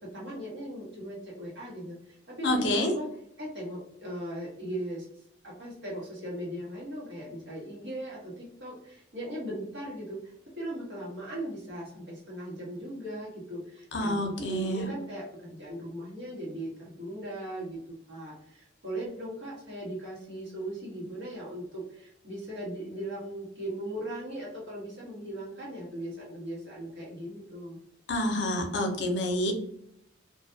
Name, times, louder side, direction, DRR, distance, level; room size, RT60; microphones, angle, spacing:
voice 1, 0.0-3.1 3.4-5.1 5.4-27.8, right 1 dB, 70° right, -5 dB, 1.2 m, -38 dB
voice 2, 2.4-2.9 13.9-14.9 28.1-29.5, left 1 dB, 65° left, 2 dB, 0.6 m, -28 dB
2.5 x 2.2 x 2.6 m, 0.71 s
head